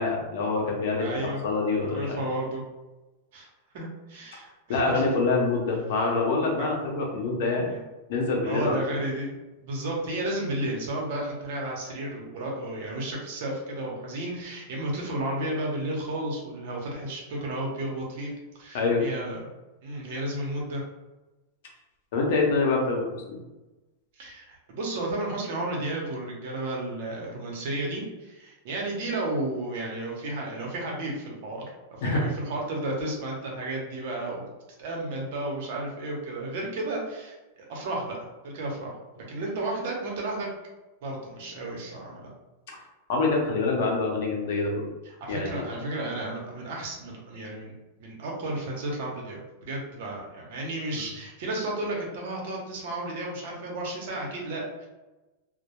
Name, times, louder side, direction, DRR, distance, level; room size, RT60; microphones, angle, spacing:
voice 1, 0.0-2.2 4.7-7.7 8.1-8.8 18.7-19.0 22.1-23.4 32.0-32.3 43.1-44.8 45.3-45.5, left 3 dB, 65° left, -1 dB, 0.7 m, -25 dB
voice 2, 1.0-1.4 1.8-2.6 3.3-3.5 3.7-5.0 6.6-6.7 7.7-7.8 8.4-18.3 18.5-19.5 19.8-20.8 24.2-31.6 32.0-34.5 34.8-38.2 38.4-40.5 41.0-42.3 45.0-47.7 48.0-54.9, right 1 dB, 60° right, -2 dB, 0.8 m, -33 dB
2.2 x 2.0 x 2.9 m, 1.1 s
supercardioid pair, 140°, 0 cm